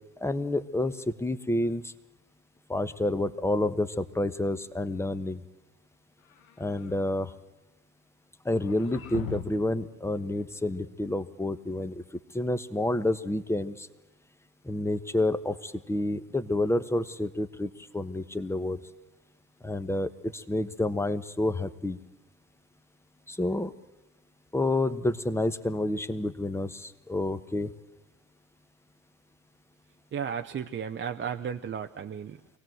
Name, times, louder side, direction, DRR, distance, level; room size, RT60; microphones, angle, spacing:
voice 1, 0.2-1.9 2.7-5.4 6.6-7.3 8.4-12.0 12.3-13.9 14.6-18.8 19.6-22.0 23.3-23.7 24.5-27.7, left 1 dB, 5° left, 12 dB, 1.2 m, -29 dB
sound 1, 6.2-7.1 8.5-9.8, left 9 dB, 90° left, 1.1 m, -41 dB
voice 2, 30.1-32.6, right 7 dB, 30° right, 6 dB, 0.7 m, -34 dB
23.5 x 17.5 x 7.8 m, 1.0 s
hypercardioid pair, 70°, 40 cm